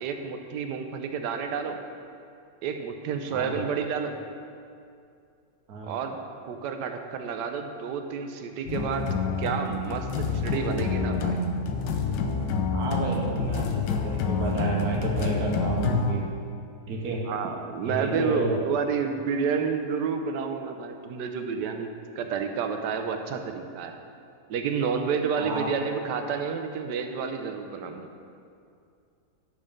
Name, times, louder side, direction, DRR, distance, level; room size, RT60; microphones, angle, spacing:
voice 1, 0.0-1.8 2.6-4.1 5.9-6.2 6.4-9.1 9.4-11.4 17.3-21.9 22.2-23.9 24.5-28.1, right 6 dB, 85° right, 6 dB, 1.3 m, -30 dB
voice 2, 5.7-6.0 12.7-16.2 16.9-17.2 17.8-18.6 25.4-25.7, right 3 dB, 65° right, -1 dB, 1.6 m, -31 dB
sound 1, 8.7-16.1, left 4 dB, 85° left, 1.3 m, -27 dB
10.5 x 6.6 x 3.6 m, 2.4 s
omnidirectional pair, 1.8 m